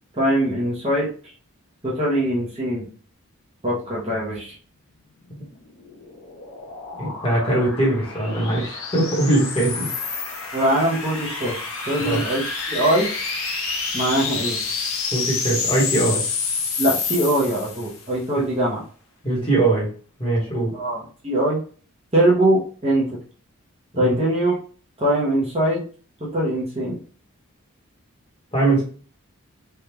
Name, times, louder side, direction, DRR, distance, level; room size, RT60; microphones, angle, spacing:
voice 1, 0.2-1.1 1.8-2.9 3.6-4.5 10.5-12.4 12.7-13.1 13.9-14.6 16.8-18.8 20.7-21.6 22.1-23.1 24.0-24.5 25.0-25.8 26.2-27.0, right 1 dB, 25° right, -5 dB, 0.8 m, -22 dB
sound 1, 5.4-18.1, left 4 dB, 65° left, 0.7 m, -29 dB
voice 2, 7.0-9.9 12.0-12.2 15.1-16.2 18.3-18.5 19.2-19.9 20.2-20.7 24.0-24.1 28.5-28.8, right 2 dB, 25° left, -4 dB, 1.2 m, -21 dB
3.4 x 2.4 x 2.9 m, 0.41 s
head